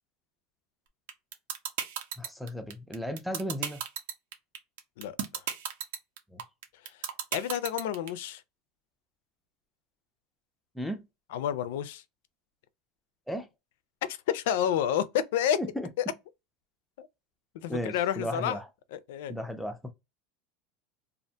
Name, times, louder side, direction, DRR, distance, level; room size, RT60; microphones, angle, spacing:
sound 1, 1.1-8.1, right 9 dB, 80° right, 0.6 m, -33 dB
voice 1, 2.2-3.8 6.3-6.4 10.8-11.0 13.3-13.5 15.6-15.9 17.7-18.7 19.3-19.9, equal, ahead, 0.3 m, -35 dB
voice 2, 7.3-8.4 11.3-12.0 14.1-15.6 16.0-16.1 17.0-17.1 17.5-18.6 18.9-19.3, left 10 dB, 75° left, 0.4 m, -29 dB
2.4 x 2.1 x 2.7 m
supercardioid pair, 170°, 0 cm